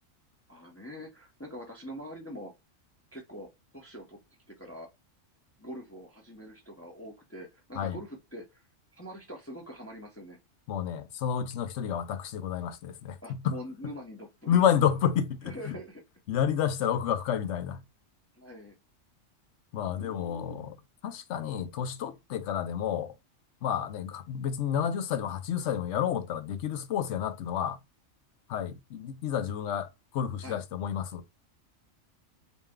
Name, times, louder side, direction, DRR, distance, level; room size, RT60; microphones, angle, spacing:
voice 1, 0.5-2.5 3.1-3.5 3.7-4.2 4.5-4.9 5.6-8.6 8.9-10.4 13.2-14.7 15.4-16.0 18.4-18.8 19.8-20.6 30.4-30.6, equal, 15° left, 0.7 m, -44 dB
voice 2, 10.7-13.6 14.5-15.8 16.3-17.8 19.7-20.7 21.0-23.1 23.6-27.8 28.5-31.2, left 9 dB, 70° left, 0.9 m, -30 dB
4.0 x 2.2 x 3.6 m
omnidirectional pair, 1.3 m